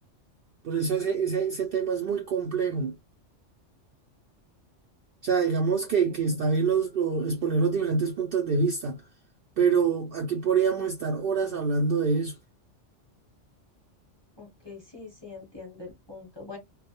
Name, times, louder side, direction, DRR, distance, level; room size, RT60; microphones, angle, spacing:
voice 1, 0.6-2.9 5.2-9.0 9.6-12.3, right 5 dB, 60° right, 0.6 m, -25 dB
voice 2, 14.4-16.6, left 4 dB, 25° left, 0.9 m, -43 dB
2.3 x 2.0 x 2.8 m
omnidirectional pair, 1.2 m